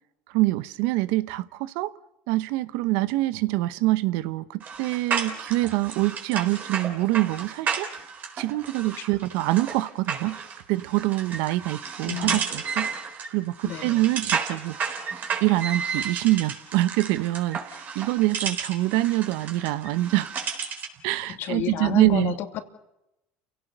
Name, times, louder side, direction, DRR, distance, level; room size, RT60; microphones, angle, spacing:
voice 1, 0.3-1.9 2.3-7.9 8.4-10.4 10.7-12.9 13.3-14.8 15.4-20.3 21.0-22.3, right 18 dB, 75° right, 16 dB, 1.0 m, -25 dB
sound 1, 4.6-21.0, right 6 dB, 40° right, 4.0 m, -32 dB
voice 2, 12.1-12.4 13.6-14.1 21.3-22.6, left 11 dB, 60° left, 7 dB, 2.7 m, -31 dB
30.0 x 17.5 x 6.8 m, 0.91 s
supercardioid pair, 105°, 4 cm